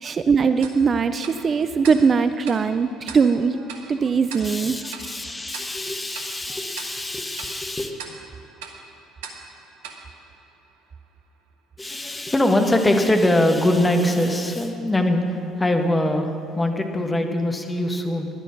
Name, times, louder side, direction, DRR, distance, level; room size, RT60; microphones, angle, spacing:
voice 1, 0.0-4.8, right 5 dB, 35° right, 11 dB, 0.5 m, -21 dB
Tick-tock, 0.6-11.1, right 5 dB, 70° right, 1.4 m, -42 dB
voice 2, 4.4-7.9 11.8-18.3, left 1 dB, 15° left, 4 dB, 1.6 m, -23 dB
15.5 x 11.0 x 6.0 m, 2.5 s
figure-of-eight pair, 55°, 0 cm